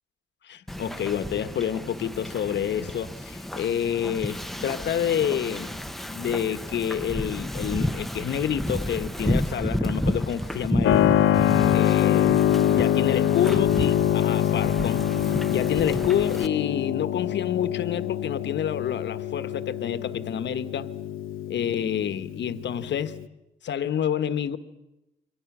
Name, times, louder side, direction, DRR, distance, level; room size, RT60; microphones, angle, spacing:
voice 1, 0.4-5.8 6.0-11.1 11.7-12.4 12.7-20.9 21.5-23.1 23.6-24.6, left 9 dB, 60° left, 1.2 m, -28 dB
Wind / Ocean, 0.7-16.5, left 1 dB, ahead, 0.8 m, -31 dB
Keyboard (musical), 10.8-23.2, left 11 dB, 75° left, 0.8 m, -24 dB
29.5 x 23.5 x 6.1 m
cardioid pair, 115°, 21 cm